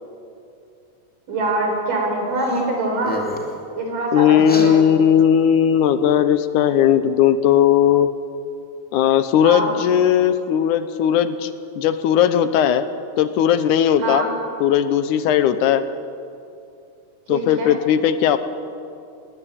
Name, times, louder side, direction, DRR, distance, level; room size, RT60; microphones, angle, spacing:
voice 1, 1.3-3.2 3.8-4.8 9.4-9.7 14.0-14.3 17.3-17.7, right 2 dB, 90° right, 1 dB, 6.1 m, -24 dB
sound 1, 2.4-2.6 2.9-3.6 4.4-4.7, equal, 5° left, 2.1 m, -31 dB
voice 2, 4.1-8.1 8.9-11.5 11.8-12.9 13.2-14.2 14.6-15.8 17.3-18.4, left 9 dB, 80° left, 11 dB, 2.3 m, -17 dB
20.0 x 20.0 x 8.7 m, 2.6 s
omnidirectional pair, 3.7 m